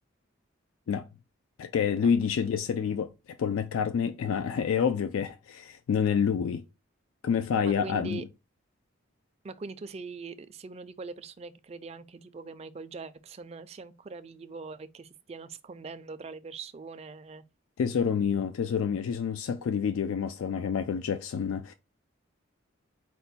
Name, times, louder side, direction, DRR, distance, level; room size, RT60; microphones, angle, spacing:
voice 1, 1.6-3.1 3.4-6.6 7.2-8.2 17.8-21.7, left 7 dB, 85° left, 0.3 m, -28 dB
voice 2, 7.6-8.3 9.4-17.4, right 4 dB, 30° right, 0.3 m, -42 dB
4.4 x 2.2 x 4.0 m
head